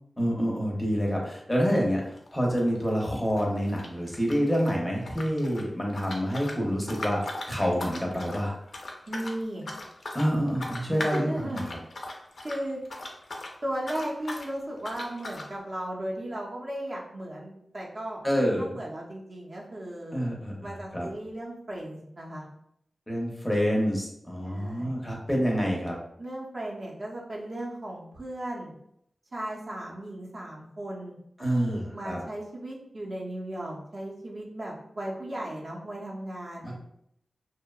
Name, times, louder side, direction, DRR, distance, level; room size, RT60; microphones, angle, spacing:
voice 1, 0.2-2.0 2.3-8.6 10.1-11.8 18.2-18.7 20.1-21.1 23.1-25.9 31.4-32.2 36.6-36.7, equal, 10° left, -2 dB, 0.5 m, -27 dB
sound 1, 1.7-1.9 2.2-4.7 5.0-13.6 13.8-14.5 14.8-15.5, left 2 dB, 60° left, 0.4 m, -39 dB
voice 2, 9.1-9.6 10.8-11.7 12.4-12.8 13.6-18.2 18.6-20.2 20.6-22.4 24.4-24.9 26.2-28.7 29.3-36.7, right 1 dB, 50° right, -3 dB, 0.6 m, -36 dB
2.7 x 2.0 x 2.3 m, 0.73 s
wide cardioid pair, 125°, 0 cm